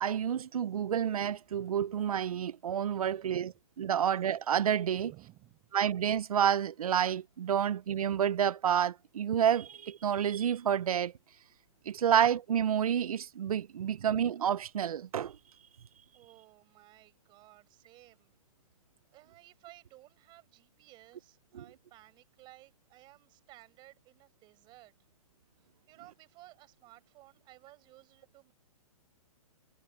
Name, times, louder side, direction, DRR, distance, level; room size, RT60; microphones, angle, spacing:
voice 1, 0.0-5.1 5.7-11.1 11.9-15.4 21.5-21.6, right 9 dB, 80° right, 0.6 m, -29 dB
voice 2, 2.9-3.6 5.0-5.7 11.8-12.1 13.9-14.1 16.1-18.3 19.1-24.9 25.6-28.5, right 18 dB, 25° right, 7.8 m, -57 dB
hypercardioid pair, 150°, 18 cm